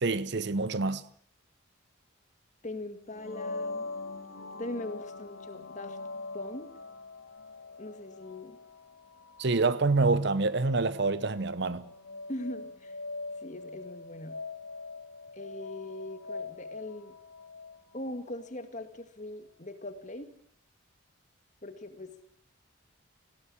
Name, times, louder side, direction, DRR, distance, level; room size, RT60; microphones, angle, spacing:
voice 1, 0.0-1.0 9.4-11.9, right 3 dB, 55° right, 0.8 m, -27 dB
voice 2, 2.6-3.9 4.6-6.0 6.3-6.7 7.8-8.6 12.3-13.0 13.4-14.4 15.3-17.1 17.9-20.3 21.6-22.1, left 1 dB, 35° left, 1.9 m, -40 dB
sound 1, 3.1-18.7, left 3 dB, 85° left, 2.3 m, -43 dB
19.0 x 16.5 x 8.6 m
head